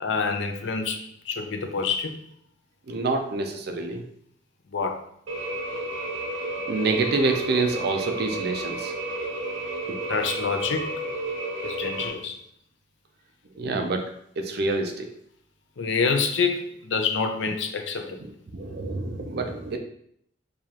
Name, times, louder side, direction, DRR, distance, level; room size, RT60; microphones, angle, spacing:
voice 1, 0.0-1.0 1.3-2.1 4.7-5.0 10.1-10.9 11.6-12.4 15.8-18.2, left 5 dB, 65° left, 5 dB, 0.5 m, -26 dB
voice 2, 2.9-4.0 6.7-8.9 13.6-14.1 14.4-15.1 18.0-19.8, right 3 dB, 55° right, 5 dB, 0.5 m, -27 dB
sound 1, 5.3-12.1, right 2 dB, 80° right, 0.9 m, -32 dB
4.9 x 2.4 x 2.8 m, 0.70 s
head